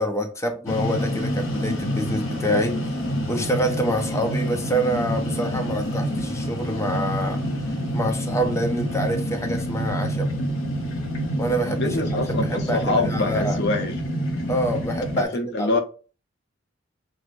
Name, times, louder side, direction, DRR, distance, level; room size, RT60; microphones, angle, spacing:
voice 1, 0.0-2.8 3.3-7.4 7.9-10.3 11.4-12.0 12.3-13.6 14.5-15.3 15.6-15.8, equal, 15° left, 0.6 m, -26 dB
sound 1, 0.7-15.3, equal, 90° left, 1.0 m, -27 dB
voice 2, 11.7-14.0 15.2-15.8, left 2 dB, 60° left, 0.7 m, -25 dB
6.0 x 2.1 x 2.5 m
head